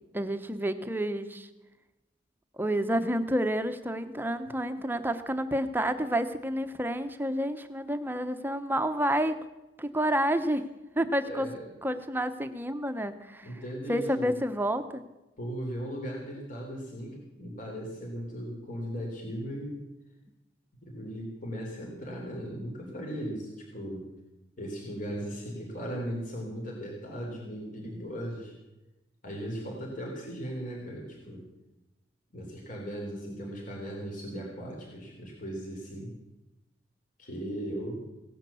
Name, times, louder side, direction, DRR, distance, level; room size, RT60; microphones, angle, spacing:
voice 1, 0.1-1.5 2.6-9.4 9.8-10.6 11.0-11.5 11.8-13.5 13.9-15.0, equal, 10° right, 9 dB, 0.9 m, -29 dB
voice 2, 11.3-11.7 13.4-14.3 15.4-19.8 20.8-24.1 24.6-28.5 29.2-31.5 32.3-36.1 37.2-38.0, equal, 45° left, -1 dB, 3.5 m, -37 dB
17.0 x 10.5 x 6.9 m, 0.99 s
head